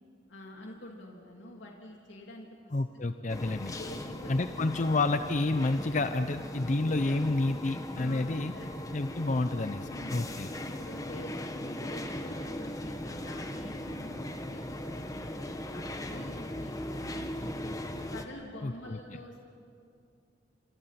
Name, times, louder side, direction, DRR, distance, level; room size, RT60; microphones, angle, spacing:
voice 1, 0.3-2.5 3.7-4.7 8.0-8.9 9.9-10.3 10.7-14.6 14.9-15.3 15.7-17.3 18.1-19.4, left 1 dB, 80° left, 0 dB, 2.9 m, -47 dB
voice 2, 2.7-3.7 4.3-8.5 8.9-10.5 18.6-19.0, left 2 dB, 40° left, 10 dB, 0.6 m, -29 dB
sound 1, 3.3-18.2, left 1 dB, 20° left, 1.1 m, -38 dB
28.0 x 26.0 x 5.9 m, 2.4 s
head